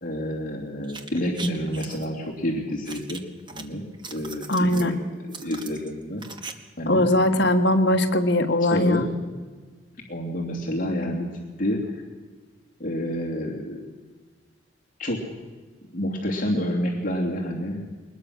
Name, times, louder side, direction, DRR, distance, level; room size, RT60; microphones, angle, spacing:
voice 1, 0.0-3.2 3.5-6.2 6.8-7.1 8.7-9.1 10.1-11.3 11.6-12.0 12.8-13.8 15.0-15.2 15.9-17.9, equal, 45° left, -2 dB, 2.9 m, -29 dB
sound 1, 0.8-2.1 2.9-3.6 3.9-4.9 5.3-6.5 6.8-6.9, right 4 dB, 25° right, 1.2 m, -39 dB
voice 2, 4.5-4.9 6.9-9.1, left 1 dB, 60° left, 6 dB, 1.6 m, -20 dB
22.0 x 20.5 x 6.5 m, 1.5 s
head